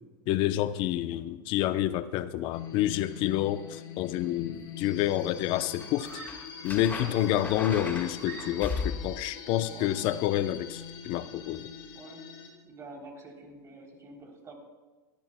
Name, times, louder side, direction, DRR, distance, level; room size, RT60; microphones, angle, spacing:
voice 1, 0.3-6.2 6.6-11.7, left 13 dB, 50° left, 12 dB, 0.7 m, -28 dB
sound 1, 2.5-12.5, left 8 dB, 70° left, 2.9 m, -43 dB
Screaming, 4.4-4.9 5.9-6.6 7.1-8.9, right 6 dB, 75° right, 3.7 m, -48 dB
sound 2, 5.6-9.3 11.5-11.7, left 4 dB, 15° left, 1.8 m, -37 dB
voice 2, 11.9-12.3 12.6-14.5, right 2 dB, 30° right, 1 dB, 3.3 m, -47 dB
24.0 x 10.5 x 2.3 m, 1.3 s
supercardioid pair, 120°, 11 cm